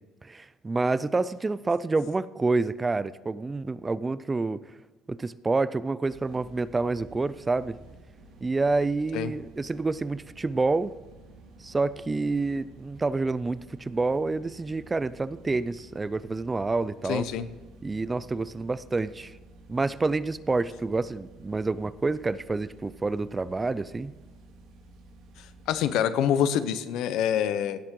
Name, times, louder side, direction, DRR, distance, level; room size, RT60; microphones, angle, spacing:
voice 1, 0.2-4.6 5.1-7.8 8.4-10.9 11.6-17.3 17.8-19.4 19.7-24.1, right 3 dB, 15° right, 17 dB, 0.3 m, -28 dB
sound 1, 6.0-25.9, right 2 dB, 80° right, 3.7 m, -52 dB
voice 2, 17.1-17.4 25.7-27.8, left 9 dB, 70° left, 13 dB, 0.8 m, -26 dB
16.5 x 7.4 x 3.8 m, 1.3 s
cardioid pair, 140°, 0 cm